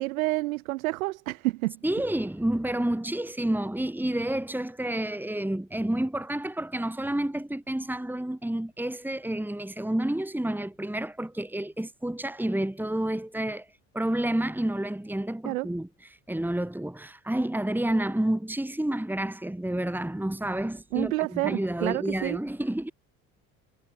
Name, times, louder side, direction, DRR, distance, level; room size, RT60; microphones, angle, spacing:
voice 1, 0.0-1.8 15.5-15.7 20.9-22.4, right 20 dB, 70° right, 2.3 m, -29 dB
voice 2, 1.8-13.7 13.9-22.9, right 1 dB, 5° right, 3.5 m, -29 dB
figure-of-eight pair, 60°, 43 cm